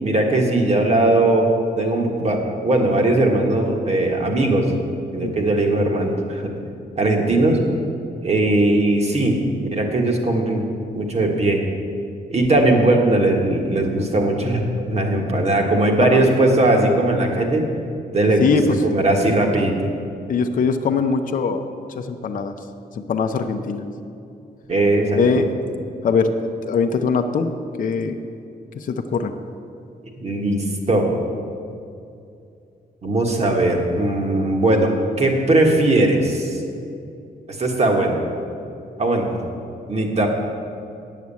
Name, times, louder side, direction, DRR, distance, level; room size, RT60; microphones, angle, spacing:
voice 1, 0.0-1.5 1.8-4.7 5.1-6.5 7.0-7.6 8.2-9.4 9.7-10.6 10.9-11.6 12.3-17.6 18.1-19.7 24.7-25.4 30.2-31.1 33.0-36.6 37.5-38.2 39.0-39.3 39.9-40.3, right 2 dB, 40° right, 2 dB, 1.4 m, -19 dB
voice 2, 18.4-18.8 20.3-21.6 22.0-22.5 23.0-23.8 25.2-25.5 26.0-27.5 27.8-28.2 28.8-29.3, left 5 dB, 50° left, 6 dB, 0.6 m, -21 dB
9.4 x 7.3 x 8.4 m, 2.5 s
wide cardioid pair, 170°, 17 cm